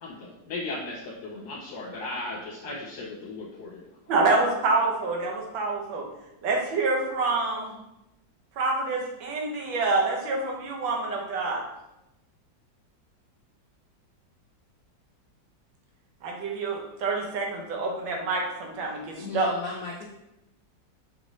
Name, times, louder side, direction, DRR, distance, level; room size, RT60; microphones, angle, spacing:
voice 1, 0.0-3.8, left 2 dB, 65° left, -5 dB, 1.3 m, -36 dB
voice 2, 4.1-6.0 6.4-7.7 8.6-11.6 16.2-19.5, right 3 dB, 85° right, 0 dB, 1.5 m, -27 dB
voice 3, 19.2-20.1, left 4 dB, 85° left, 0 dB, 0.7 m, -35 dB
4.8 x 2.6 x 3.1 m, 0.92 s
omnidirectional pair, 2.0 m